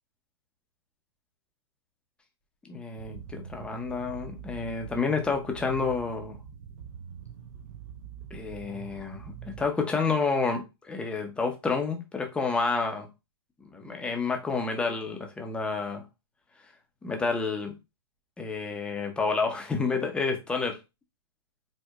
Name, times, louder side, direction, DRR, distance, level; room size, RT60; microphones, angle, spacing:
voice 1, 2.6-6.4 8.3-13.1 13.7-16.0 17.0-17.7 18.4-20.8, left 4 dB, 5° left, 0.6 m, -29 dB
sound 1, 3.0-9.7, right 8 dB, 40° right, 0.4 m, -44 dB
4.5 x 2.1 x 2.3 m
hypercardioid pair, 135°, 14 cm